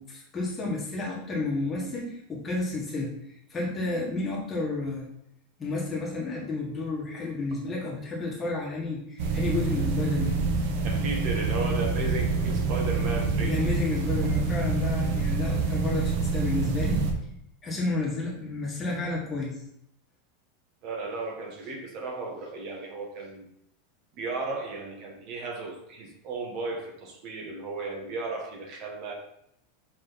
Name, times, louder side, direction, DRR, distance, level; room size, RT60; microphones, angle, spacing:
voice 1, 0.0-3.1 3.5-5.1 5.6-10.4 13.4-17.0 17.6-19.6, left 3 dB, 15° left, -3 dB, 1.7 m, -31 dB
sound 1, 9.2-17.1, right 4 dB, 60° right, 1.3 m, -26 dB
voice 2, 10.8-13.6 14.2-14.3 20.8-23.4 24.2-29.1, right 3 dB, 40° right, 2 dB, 1.5 m, -35 dB
6.4 x 5.2 x 4.1 m, 0.74 s
supercardioid pair, 160°, 0 cm